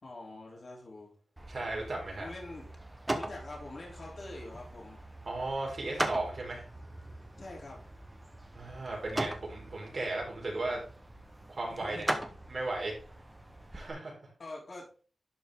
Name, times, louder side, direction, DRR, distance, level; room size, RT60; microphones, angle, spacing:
voice 1, 0.0-1.1 2.2-2.7 3.2-5.0 7.4-7.8 11.7-12.0 14.4-14.9, left 2 dB, 45° left, -3 dB, 3.6 m, -45 dB
sound 1, 1.4-13.9, right 1 dB, 15° right, 1.1 m, -40 dB
voice 2, 1.5-2.3 5.2-6.7 8.5-10.8 11.5-12.1 12.5-12.9 13.7-14.1, right 2 dB, 50° right, -2 dB, 4.4 m, -35 dB
11.5 x 5.5 x 3.8 m, 0.40 s
wide cardioid pair, 135°, 0 cm